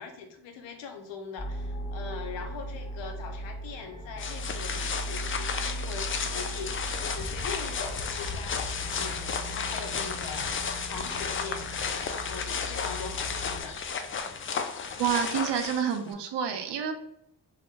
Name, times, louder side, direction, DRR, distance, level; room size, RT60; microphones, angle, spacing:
voice 1, 0.0-11.9 12.3-13.8, left 5 dB, 90° left, 4 dB, 0.6 m, -41 dB
sound 1, 1.4-13.6, right 1 dB, 10° left, 0.9 m, -38 dB
sound 2, 4.2-16.1, left 6 dB, 30° left, 0.4 m, -33 dB
voice 2, 15.0-16.9, right 8 dB, 70° right, 6 dB, 0.6 m, -28 dB
2.6 x 2.1 x 3.5 m, 0.77 s
supercardioid pair, 45°, 44 cm